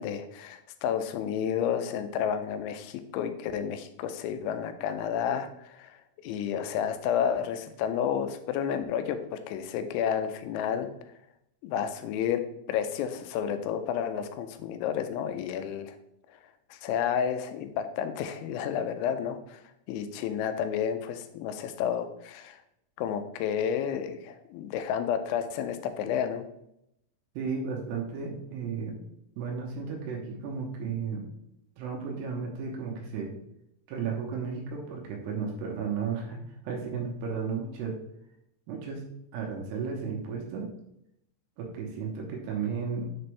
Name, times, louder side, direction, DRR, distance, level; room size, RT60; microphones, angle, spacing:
voice 1, 0.0-6.0 6.2-10.9 11.6-12.4 12.7-16.0 16.7-19.6 19.9-22.6 23.0-26.4, left 8 dB, 90° left, 9 dB, 3.0 m, -31 dB
voice 2, 27.4-29.0 29.4-31.3 31.8-33.3 33.9-38.0 38.7-39.1 39.3-40.7 41.6-43.1, right 5 dB, 80° right, 0 dB, 2.7 m, -34 dB
6.8 x 4.2 x 3.2 m, 0.79 s
omnidirectional pair, 5.3 m